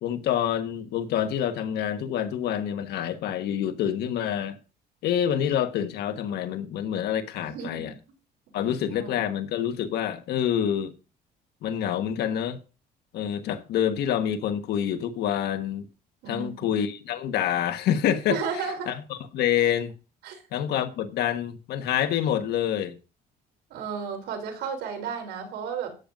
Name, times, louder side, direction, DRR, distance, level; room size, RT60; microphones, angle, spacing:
voice 1, 0.0-4.6 5.0-7.9 8.5-10.9 11.6-12.6 13.1-15.9 16.3-19.9 20.5-23.0, left 10 dB, 75° left, 1.4 m, -27 dB
voice 2, 7.4-7.9 8.6-9.3 16.2-16.8 18.3-19.0 20.2-20.4 23.7-26.0, right 6 dB, 80° right, 3.6 m, -34 dB
13.0 x 8.9 x 2.6 m
cardioid pair, 110°, 17 cm